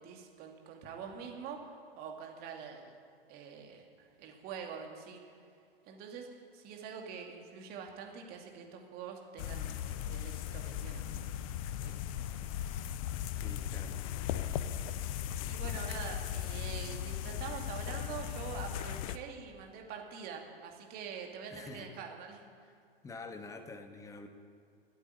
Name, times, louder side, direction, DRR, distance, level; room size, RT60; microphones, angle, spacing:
voice 1, 0.0-2.9 3.3-5.2 5.9-11.3 11.8-12.1 15.5-22.4, right 7 dB, 30° right, 2 dB, 2.4 m, -45 dB
sound 1, 9.4-19.2, left 10 dB, 35° left, 0.7 m, -37 dB
voice 2, 13.4-14.1 21.5-21.9 23.0-24.3, left 3 dB, 10° left, 7 dB, 1.1 m, -47 dB
14.0 x 8.7 x 9.7 m, 2.3 s
figure-of-eight pair, 105°, 30 cm